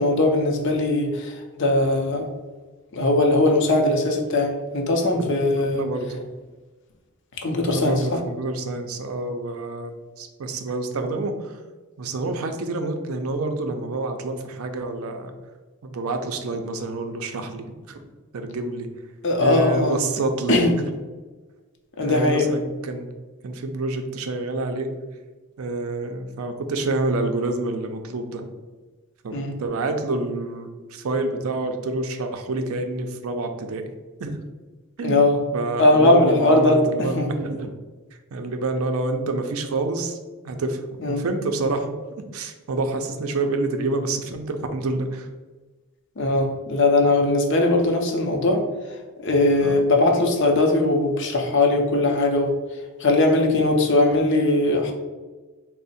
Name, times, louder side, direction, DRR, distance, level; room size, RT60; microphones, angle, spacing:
voice 1, 0.0-2.3 2.9-5.8 7.4-8.2 19.2-20.0 20.5-20.7 22.0-22.5 29.3-29.6 35.0-35.4 35.8-37.3 41.0-41.2 46.2-48.6 49.2-52.5 53.0-54.9, left 2 dB, 55° left, 2 dB, 0.6 m, -20 dB
voice 2, 5.5-6.2 7.6-11.6 12.0-15.3 15.8-18.0 18.3-18.9 19.4-20.9 22.0-23.1 23.4-24.9 25.6-28.5 29.2-33.8 34.2-34.4 35.0-35.2 35.5-37.8 38.3-40.2 40.4-45.3 49.6-49.8, right 2 dB, 70° right, 6 dB, 0.4 m, -28 dB
3.5 x 2.1 x 4.1 m, 1.3 s
head